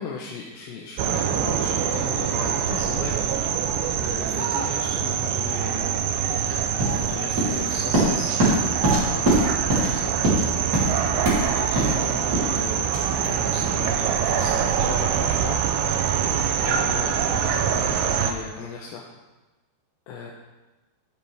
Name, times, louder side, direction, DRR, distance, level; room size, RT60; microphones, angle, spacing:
voice 1, 0.0-3.4 3.9-5.9 6.9-8.3 8.9-10.1 11.1-12.9 13.2-15.6 16.6-19.1 20.1-20.3, left 5 dB, 75° left, -2 dB, 2.6 m, -36 dB
sound 1, 1.0-18.3, right 8 dB, 80° right, 2.3 m, -24 dB
sound 2, 6.5-15.3, right 1 dB, 25° right, 3.1 m, -25 dB
11.5 x 8.9 x 3.5 m, 1.1 s
omnidirectional pair, 4.5 m